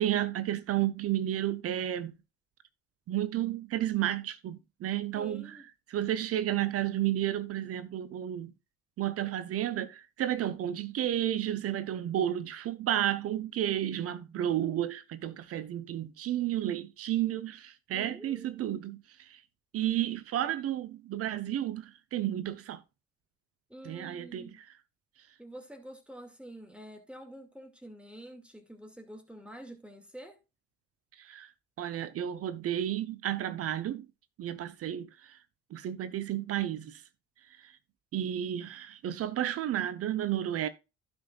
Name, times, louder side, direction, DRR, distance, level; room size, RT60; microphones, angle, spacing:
voice 1, 0.0-2.2 3.1-5.6 5.9-8.5 9.0-19.4 19.7-22.8 23.8-24.6 31.2-31.5 31.8-34.1 34.4-35.4 35.7-37.0 37.6-37.7 38.1-40.7, right 12 dB, 45° right, 0.9 m, -32 dB
voice 2, 5.1-5.7 17.9-18.6 23.7-24.6 25.4-30.4, right 1 dB, 5° right, 2.4 m, -48 dB
15.5 x 5.4 x 2.5 m
figure-of-eight pair, 50°, 33 cm